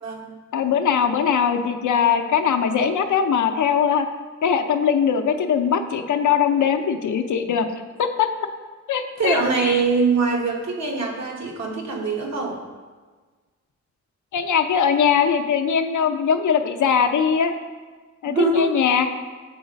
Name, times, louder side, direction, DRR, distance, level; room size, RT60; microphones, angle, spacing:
voice 1, 0.0-0.4 9.2-12.6 18.2-18.8, right 3 dB, 65° right, 1 dB, 1.1 m, -23 dB
voice 2, 0.5-4.1 4.4-7.7 8.0-8.3 8.9-9.8 14.3-17.5 18.2-19.1, left 7 dB, 80° left, 7 dB, 0.6 m, -21 dB
7.0 x 4.0 x 5.1 m, 1.4 s
wide cardioid pair, 115°, 30 cm